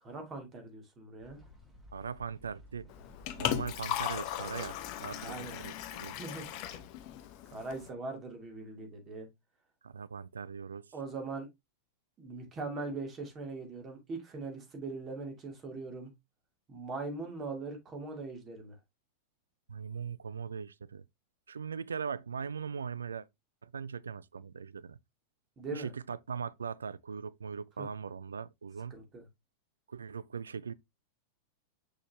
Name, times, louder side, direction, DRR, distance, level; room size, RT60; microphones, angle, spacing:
voice 1, 0.0-1.4 5.2-5.5 6.1-6.5 7.5-9.3 10.9-11.5 12.2-16.1 16.7-18.7 25.6-25.9 27.8-27.9 28.9-29.2, right 3 dB, 25° right, 2.5 m, -41 dB
sound 1, 1.2-8.6, left 2 dB, 5° right, 3.5 m, -57 dB
voice 2, 1.9-2.9 3.4-6.1 9.8-10.9 19.7-21.1 21.5-23.3 23.6-25.0 25.7-29.0 29.9-30.7, right 6 dB, 70° right, 0.3 m, -40 dB
Liquid, 2.9-7.9, left 11 dB, 45° left, 0.8 m, -37 dB
6.2 x 5.5 x 2.8 m
figure-of-eight pair, 90°, 0 cm